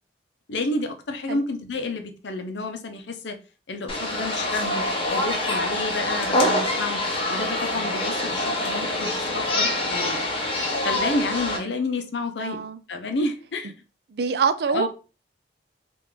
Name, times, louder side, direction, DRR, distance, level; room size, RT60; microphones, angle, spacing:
voice 1, 0.5-3.4 3.7-7.0 7.3-10.2 10.8-12.6 12.9-13.7 14.7-14.9, left 2 dB, 75° left, 0.6 m, -30 dB
sound 1, 3.9-11.6, left 1 dB, 30° left, 0.8 m, -25 dB
voice 2, 12.4-12.8 14.1-14.9, right 5 dB, 60° right, 0.4 m, -24 dB
3.6 x 2.5 x 3.2 m
head